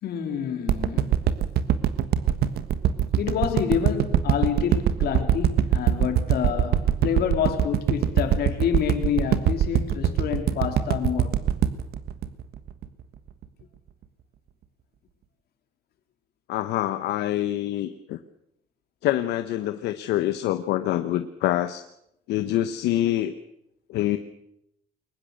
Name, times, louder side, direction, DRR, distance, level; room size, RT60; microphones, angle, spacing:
voice 1, 0.0-1.2 3.2-11.4, left 8 dB, 65° left, 3.5 m, -28 dB
sound 1, 0.7-13.0 13.4-13.5, right 10 dB, 70° right, 1.4 m, -22 dB
voice 2, 16.5-18.2 19.0-21.8 22.3-23.3 23.9-24.2, left 13 dB, 85° left, 1.0 m, -25 dB
22.5 x 20.0 x 6.6 m
cardioid pair, 110°, 17 cm